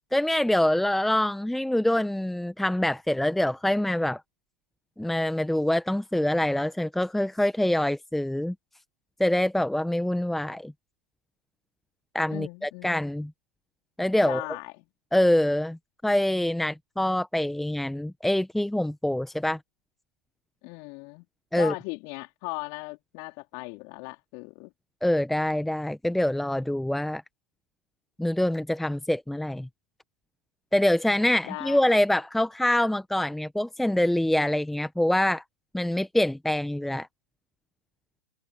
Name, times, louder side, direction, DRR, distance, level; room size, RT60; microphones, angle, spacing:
voice 1, 0.1-4.2 5.0-8.5 9.2-10.7 12.1-13.3 14.0-14.4 15.1-15.8 16.0-19.6 21.5-21.7 25.0-27.2 28.2-29.7 30.7-35.4 35.7-37.1, left 1 dB, ahead, 1.3 m, -25 dB
voice 2, 12.3-13.0 14.2-14.9 20.6-21.3 21.6-24.7 31.1-31.8, left 33 dB, 40° left, 4.4 m, -38 dB
figure-of-eight pair, 105°, 9 cm